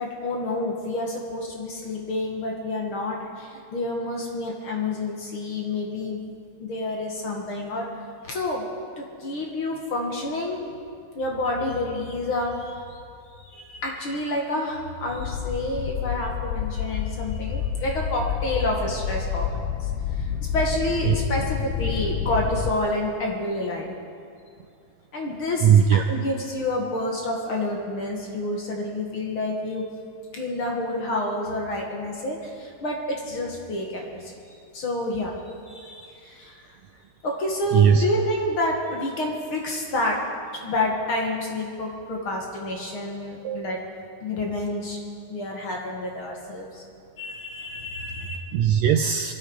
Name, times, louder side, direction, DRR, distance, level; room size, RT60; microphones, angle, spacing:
voice 1, 0.0-6.2 6.6-7.9 8.2-8.7 9.0-10.6 11.1-13.0 13.4-20.3 20.5-24.0 25.1-25.7 26.1-29.9 30.3-34.3 34.7-35.3 35.7-36.7 37.2-40.2 40.6-43.8 44.2-45.0 45.3-46.8 47.2-48.4, left 1 dB, 50° left, -1 dB, 2.2 m, -29 dB
sound 1, 15.1-22.7, left 8 dB, 80° left, 2.1 m, -28 dB
voice 2, 25.6-26.1 37.7-38.0 43.4-43.8 48.5-49.3, right 8 dB, 80° right, 7 dB, 1.6 m, -19 dB
23.0 x 12.5 x 4.8 m, 2.3 s
omnidirectional pair, 3.6 m